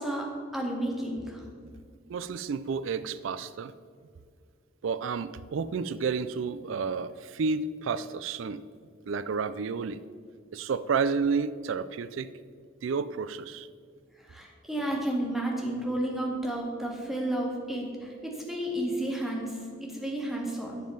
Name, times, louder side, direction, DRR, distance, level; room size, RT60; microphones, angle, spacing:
voice 1, 0.0-1.4 14.2-20.8, right 1 dB, ahead, -2 dB, 2.0 m, -32 dB
voice 2, 2.1-3.7 4.8-8.6 9.1-10.0 10.5-12.3 12.8-13.7, right 5 dB, 75° right, 15 dB, 0.4 m, -31 dB
10.5 x 7.4 x 5.8 m, 2.1 s
head